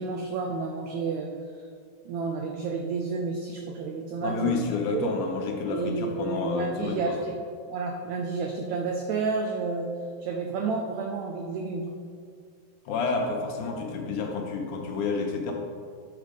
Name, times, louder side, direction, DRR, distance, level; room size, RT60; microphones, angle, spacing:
voice 1, 0.0-1.3 2.0-4.7 4.9-5.1 5.7-7.3 7.7-9.9 10.2-11.8, right 4 dB, 85° right, 2 dB, 1.6 m, -30 dB
voice 2, 4.2-7.2 12.9-15.5, left 4 dB, 75° left, 2 dB, 2.1 m, -29 dB
8.2 x 5.0 x 5.1 m, 2.2 s
omnidirectional pair, 3.9 m